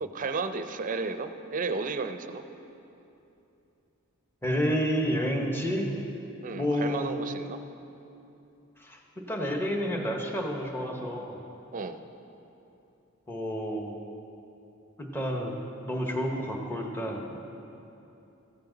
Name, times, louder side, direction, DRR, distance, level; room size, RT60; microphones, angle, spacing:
voice 1, 0.0-2.4 6.4-7.6 11.7-12.0, right 4 dB, 40° right, 9 dB, 0.5 m, -33 dB
voice 2, 4.4-5.9 6.5-7.1 8.8-11.4 13.3-14.0 15.0-15.6 15.9-17.4, equal, 10° left, 1 dB, 1.0 m, -30 dB
14.5 x 8.5 x 3.9 m, 2.9 s
head